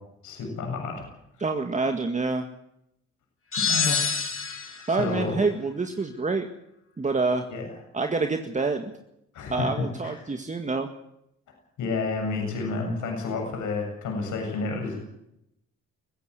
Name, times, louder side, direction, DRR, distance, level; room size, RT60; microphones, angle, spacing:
voice 1, 0.2-1.1 3.6-4.0 4.9-5.3 7.5-7.7 9.3-9.7 10.0-10.2 11.8-15.0, left 4 dB, 80° left, 2 dB, 7.5 m, -30 dB
voice 2, 1.4-2.5 3.9-4.0 4.6-6.5 7.0-7.5 7.9-8.9 9.5-10.9, right 3 dB, 25° right, 5 dB, 1.9 m, -27 dB
sound 1, 3.5-4.9, left 5 dB, 45° left, 3.9 m, -26 dB
23.5 x 15.0 x 8.4 m, 0.80 s
cardioid pair, 90°, 30 cm